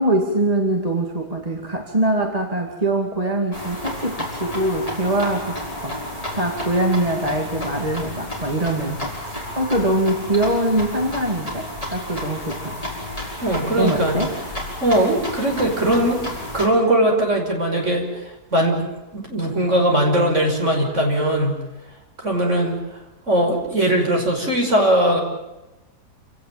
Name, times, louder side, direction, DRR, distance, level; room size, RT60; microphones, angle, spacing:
voice 1, 0.0-12.8 13.8-14.4, right 1 dB, 20° right, 2 dB, 2.6 m, -23 dB
sound 1, 3.5-16.7, left 1 dB, 20° left, 5.6 m, -31 dB
voice 2, 13.4-14.2 14.8-16.2 16.5-18.8 19.1-21.6 22.2-22.8 23.3-25.2, right 1 dB, 45° right, 1 dB, 5.7 m, -20 dB
28.0 x 18.0 x 8.9 m, 1.0 s
omnidirectional pair, 1.8 m